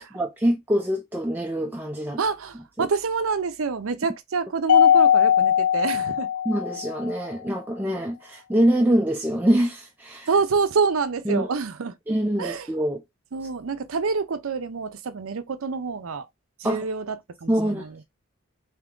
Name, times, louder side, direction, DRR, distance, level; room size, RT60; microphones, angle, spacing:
voice 1, 0.0-2.2 2.8-2.9 6.5-10.3 11.3-11.5 12.1-13.0 16.6-16.9 17.5-17.9, right 1 dB, 10° right, 0.4 m, -24 dB
voice 2, 2.2-6.3 10.3-12.0 12.4-12.7 13.3-16.3 16.6-18.0, right 5 dB, 75° right, 0.6 m, -27 dB
Mallet percussion, 4.7-7.1, left 9 dB, 85° left, 0.7 m, -19 dB
3.5 x 2.8 x 3.7 m
head